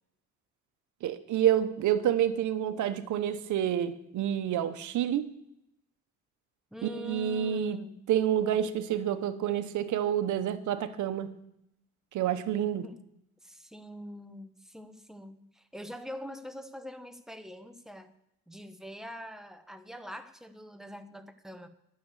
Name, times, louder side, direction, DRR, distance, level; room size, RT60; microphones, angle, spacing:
voice 1, 1.0-5.3 6.8-7.8 8.1-11.3 12.1-12.8, right 10 dB, 75° right, 11 dB, 1.0 m, -28 dB
voice 2, 6.7-8.0 12.8-13.0 13.4-18.1 18.5-21.7, left 1 dB, ahead, 8 dB, 1.0 m, -44 dB
11.5 x 6.8 x 8.3 m, 0.79 s
cardioid pair, 90°, 30 cm